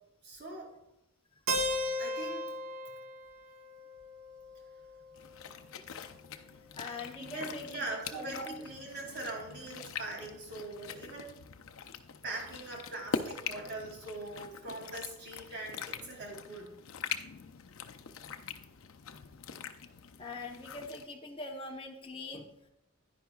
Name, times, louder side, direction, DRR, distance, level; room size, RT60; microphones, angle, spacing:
voice 1, 0.2-0.7 2.0-2.6 7.2-11.3 12.2-16.7, right 2 dB, 55° right, 0 dB, 2.6 m, -42 dB
Keyboard (musical), 1.5-5.4, equal, 85° right, 1.0 m, -36 dB
sound 1, 5.2-21.1, left 6 dB, 75° left, 0.6 m, -43 dB
voice 2, 6.7-7.8 8.1-8.5 20.2-22.5, left 2 dB, 25° left, 0 dB, 0.8 m, -42 dB
10.0 x 10.0 x 2.3 m, 0.84 s
head